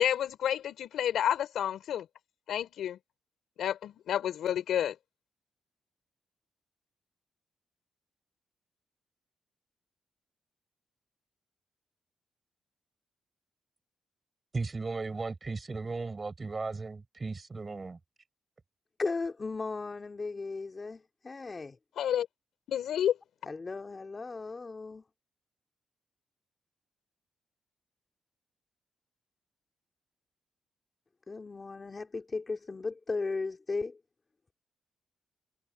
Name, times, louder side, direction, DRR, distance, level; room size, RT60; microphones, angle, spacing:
voice 1, 0.0-2.1 2.5-3.0 3.6-5.0 22.0-22.3 22.7-23.2, left 10 dB, 85° left, 4.4 m, -29 dB
voice 2, 14.5-18.0, right 3 dB, 30° right, 6.1 m, -36 dB
voice 3, 19.0-21.8 23.5-25.0 31.3-34.0, left 3 dB, 30° left, 3.1 m, -36 dB
cardioid pair, 100°, 0 cm